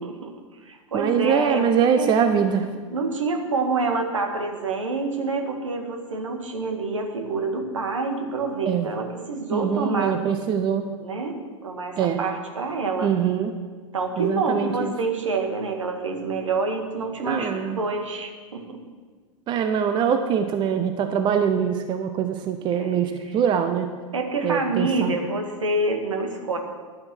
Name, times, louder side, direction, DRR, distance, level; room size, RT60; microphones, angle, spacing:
voice 1, 0.0-0.3 0.6-1.7 2.0-2.2 2.9-10.2 11.0-13.1 13.9-18.8 22.7-23.4 24.1-26.6, right 3 dB, 70° right, 4 dB, 1.8 m, -27 dB
voice 2, 0.9-2.7 8.7-8.9 9.5-10.9 12.0-12.2 13.0-13.5 14.2-14.9 17.2-17.8 19.5-23.9 24.4-25.1, right 7 dB, 30° right, 8 dB, 0.8 m, -23 dB
11.5 x 8.7 x 6.2 m, 1.5 s
figure-of-eight pair, 90°, 16 cm